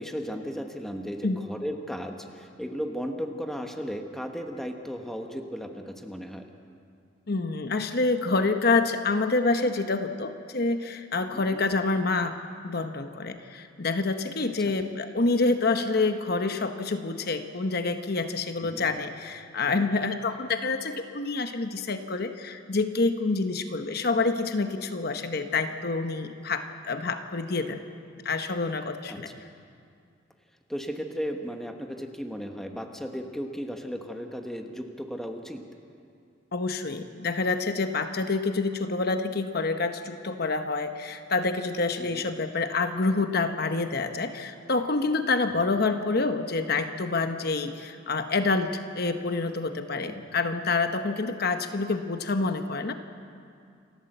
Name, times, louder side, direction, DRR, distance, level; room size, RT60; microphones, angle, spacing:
voice 1, 0.0-6.5 11.3-11.6 14.6-14.7 18.6-18.9 29.1-29.2 30.7-35.6 42.0-42.2 45.5-45.6 50.0-50.2, equal, ahead, 4 dB, 1.3 m, -35 dB
voice 2, 7.3-12.4 12.6-27.8 28.2-29.3 36.5-52.9, left 3 dB, 55° left, 7 dB, 1.0 m, -27 dB
28.5 x 12.5 x 7.9 m, 2.3 s
head